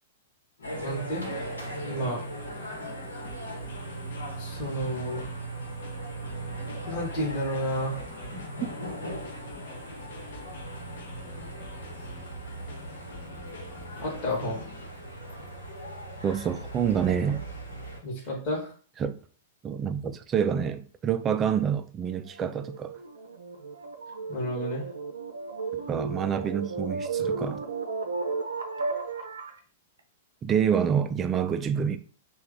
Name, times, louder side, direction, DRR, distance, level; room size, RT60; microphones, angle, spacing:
sound 1, 0.6-18.0, right 1 dB, 85° left, 1.0 m, -39 dB
sound 2, 0.6-14.9, left 2 dB, 60° left, 0.8 m, -47 dB
voice 1, 0.8-1.5 1.8-2.2 4.4-5.3 6.8-8.0 14.0-14.6 18.0-18.7 24.3-24.8 27.2-27.3, equal, 40° left, 1.2 m, -31 dB
voice 2, 16.2-17.4 19.0-19.2 19.6-22.9 25.9-27.6 30.4-32.0, right 8 dB, 25° right, 0.3 m, -27 dB
sound 3, 22.3-29.6, right 4 dB, 75° right, 0.5 m, -34 dB
3.2 x 2.3 x 3.6 m
figure-of-eight pair, 100°, 0 cm